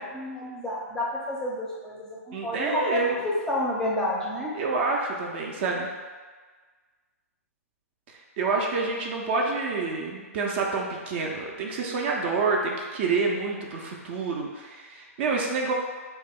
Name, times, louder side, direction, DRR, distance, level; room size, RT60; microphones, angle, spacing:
voice 1, 0.1-4.5, left 1 dB, 5° left, -4 dB, 0.5 m, -30 dB
voice 2, 2.3-3.1 4.5-5.9 8.4-15.7, right 4 dB, 45° right, 0 dB, 0.4 m, -28 dB
2.9 x 2.1 x 3.5 m, 1.4 s
figure-of-eight pair, 120°, 8 cm